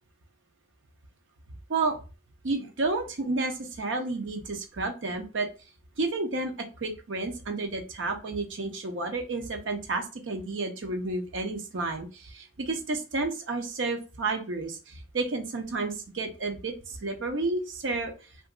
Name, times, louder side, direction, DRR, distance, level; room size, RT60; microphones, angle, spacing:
voice 1, 2.4-5.5 6.0-18.1, right 3 dB, 70° right, 5 dB, 0.6 m, -31 dB
2.8 x 2.5 x 2.4 m, 0.32 s
head